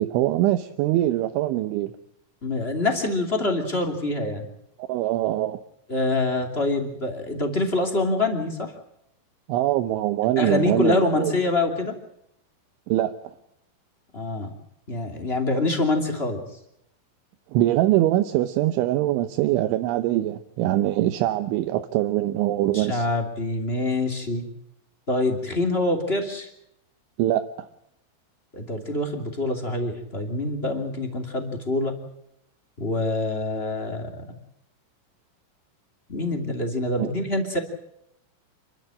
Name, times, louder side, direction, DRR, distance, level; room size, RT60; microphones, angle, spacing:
voice 1, 0.0-1.9 4.9-5.6 9.5-11.3 12.9-13.1 17.5-23.0 27.2-27.7 37.0-37.1, right 14 dB, 75° right, 8 dB, 3.1 m, -23 dB
voice 2, 2.4-4.5 5.9-8.7 10.3-12.0 14.1-14.5 14.9-16.4 22.7-24.4 25.1-26.5 28.5-31.9 32.8-34.1 36.1-37.6, left 2 dB, 25° left, 3 dB, 1.4 m, -25 dB
28.0 x 13.0 x 8.9 m, 0.80 s
omnidirectional pair, 6.0 m